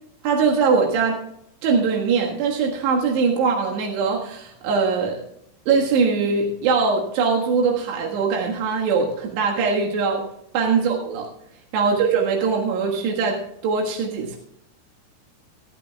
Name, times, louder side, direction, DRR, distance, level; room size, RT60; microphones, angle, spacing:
voice 1, 0.2-1.2 1.6-5.2 5.7-10.2 10.5-11.3 11.7-14.4, right 5 dB, 85° right, -1 dB, 3.8 m, -21 dB
25.5 x 9.3 x 2.3 m, 0.77 s
omnidirectional pair, 4.8 m